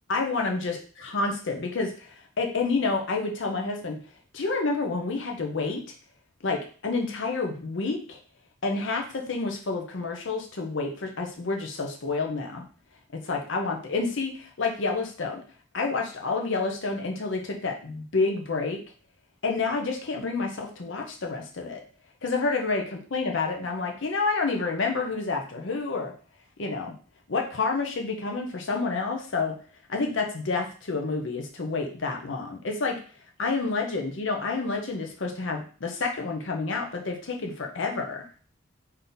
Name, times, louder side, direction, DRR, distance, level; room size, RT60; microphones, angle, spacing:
voice 1, 0.1-4.0 4.3-5.8 6.4-8.2 8.6-12.6 13.1-15.4 15.7-18.8 19.4-21.8 22.2-26.1 26.6-26.9 27.3-29.6 29.9-33.0 33.4-38.2, left 3 dB, 60° left, 3 dB, 0.6 m, -29 dB
3.6 x 2.7 x 3.9 m, 0.40 s
head